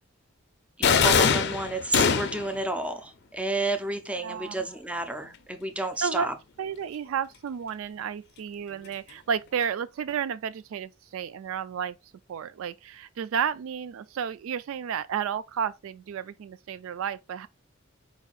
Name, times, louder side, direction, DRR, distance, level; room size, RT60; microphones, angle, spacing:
sound 1, 0.8-2.6, left 6 dB, 55° left, 0.5 m, -22 dB
voice 1, 0.8-6.3, right 2 dB, 5° right, 0.5 m, -31 dB
voice 2, 4.1-4.6 5.8-6.3 6.6-12.0 12.3-17.5, right 7 dB, 75° right, 0.3 m, -32 dB
4.7 x 4.1 x 2.4 m
head